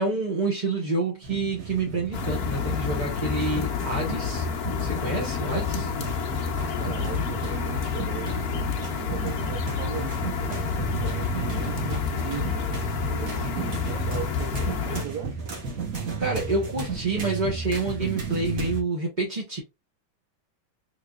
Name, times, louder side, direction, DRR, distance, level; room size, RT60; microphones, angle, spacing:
voice 1, 0.0-4.4 4.8-5.9 16.2-19.6, right 3 dB, 30° right, 1.0 m, -28 dB
sound 1, 1.2-18.8, right 5 dB, 45° right, 1.4 m, -34 dB
sound 2, 2.1-15.0, left 6 dB, 60° left, 1.1 m, -29 dB
voice 2, 6.8-10.6 11.0-12.7 13.1-15.4, right 9 dB, 70° right, 1.0 m, -38 dB
3.8 x 3.7 x 2.3 m
omnidirectional pair, 2.3 m